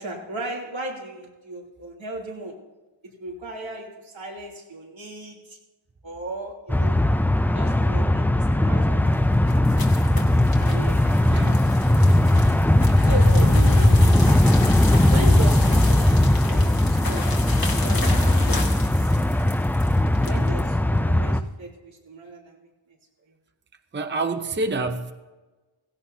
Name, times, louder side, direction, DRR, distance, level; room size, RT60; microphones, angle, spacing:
voice 1, 0.0-2.6 3.2-5.6 6.0-7.0 7.5-9.7 10.6-11.6 12.2-12.3 13.0-14.1 15.1-17.3 17.8-19.1 20.2-22.7, right 2 dB, 85° right, -3 dB, 3.2 m, -36 dB
sound 1, 6.7-21.4, left 1 dB, 5° left, 0.4 m, -19 dB
sound 2, 8.9-20.7, left 3 dB, 50° left, 1.9 m, -35 dB
voice 2, 11.3-11.8 23.9-25.1, right 3 dB, 25° right, 8 dB, 0.7 m, -27 dB
16.5 x 16.5 x 2.8 m, 1.2 s
wide cardioid pair, 100°, 46 cm